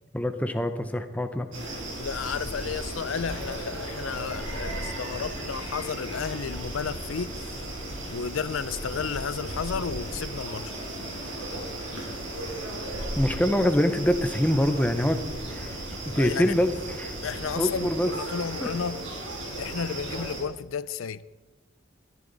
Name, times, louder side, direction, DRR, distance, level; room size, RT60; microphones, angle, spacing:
voice 1, 0.1-1.5 13.2-15.2 15.5-15.8 16.1-17.1 17.6-18.1 18.6-18.7, equal, 5° left, 0.7 m, -25 dB
sound 1, 1.5-20.4, right 1 dB, 80° right, 4.5 m, -35 dB
voice 2, 2.0-7.7 8.0-10.8 16.1-16.5 17.2-19.0 19.6-21.2, left 6 dB, 85° left, 0.5 m, -32 dB
20.5 x 11.5 x 4.0 m
head